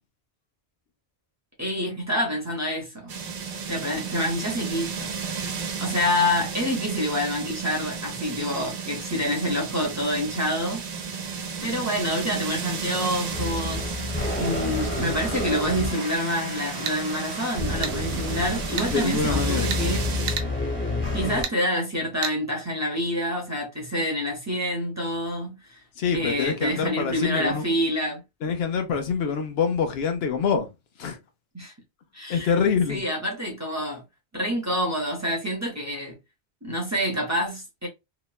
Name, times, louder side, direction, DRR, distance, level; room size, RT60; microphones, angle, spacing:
voice 1, 1.6-3.2 3.7-5.5 5.8-11.2 11.6-14.0 14.4-20.1 21.1-25.8 26.1-28.2 31.5-31.7 32.1-32.5 32.9-34.0 34.3-36.2 36.6-37.9, equal, 15° right, 0.7 m, -27 dB
sound 1, 3.1-20.4, right 6 dB, 80° right, 1.0 m, -33 dB
sound 2, 13.3-21.4, left 2 dB, 10° left, 1.0 m, -30 dB
sound 3, 16.9-17.0 17.8-18.0 18.8-18.9 19.7-19.8 20.3-20.5 21.4-21.6 22.2-22.4, right 7 dB, 65° right, 0.7 m, -30 dB
voice 2, 18.9-19.7 26.0-27.6 28.4-30.7 31.0-31.2 32.3-33.0, left 6 dB, 75° left, 0.8 m, -25 dB
2.9 x 2.1 x 2.2 m
omnidirectional pair, 1.1 m